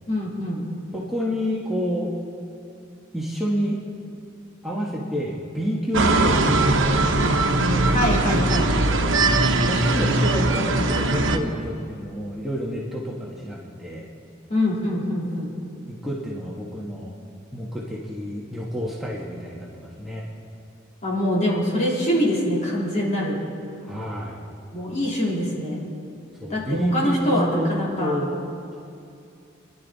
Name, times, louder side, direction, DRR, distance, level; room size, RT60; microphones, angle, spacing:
voice 1, 0.1-0.7 7.9-8.7 14.5-15.5 21.0-23.4 24.7-25.8 26.5-28.2, left 1 dB, 40° left, -5 dB, 3.7 m, -24 dB
voice 2, 0.9-2.1 3.1-3.8 4.6-7.4 8.3-9.2 9.6-14.1 15.9-17.2 17.5-20.2 23.8-24.4 26.4-27.7 28.0-28.4, equal, ahead, -6 dB, 1.5 m, -28 dB
sound 1, 5.9-11.4, right 2 dB, 75° right, 1.1 m, -20 dB
27.5 x 11.0 x 4.2 m, 2.6 s
head